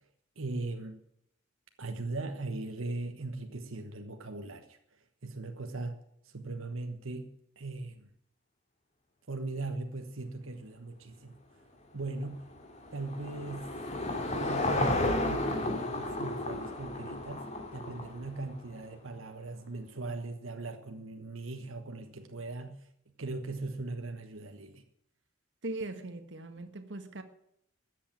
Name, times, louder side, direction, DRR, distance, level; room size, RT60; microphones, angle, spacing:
voice 1, 0.4-1.0 1.8-4.8 5.2-6.0 6.3-8.1 9.3-11.4 11.9-12.5 12.9-13.7 14.1-17.4 17.7-22.7 23.2-24.8, right 2 dB, 80° right, 1.3 m, -39 dB
Car passing by / Engine, 12.2-18.6, left 1 dB, 35° left, 2.3 m, -33 dB
voice 2, 25.6-27.2, right 2 dB, 60° right, 1.5 m, -39 dB
13.5 x 8.4 x 8.8 m
head